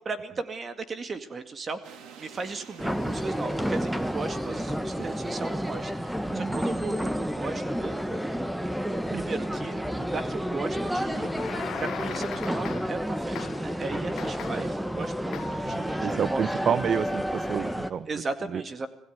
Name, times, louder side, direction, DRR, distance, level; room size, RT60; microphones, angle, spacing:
voice 1, 0.0-8.1 9.1-16.4 18.1-18.9, right 3 dB, 35° right, 11 dB, 2.0 m, -36 dB
sound 1, 1.8-8.9, right 7 dB, 80° right, 3.2 m, -53 dB
sound 2, 2.8-17.9, equal, 5° right, 1.5 m, -30 dB
voice 2, 6.3-6.9 9.1-9.3 14.6-14.7 15.6-18.1 18.5-18.6, right 8 dB, 50° right, 16 dB, 0.9 m, -30 dB
sound 3, 11.1-13.1 13.3-13.8 14.2-14.8 15.3-15.7, left 12 dB, 70° left, 0.9 m, -39 dB
26.0 x 17.0 x 9.5 m, 0.74 s
cardioid pair, 115°, 0 cm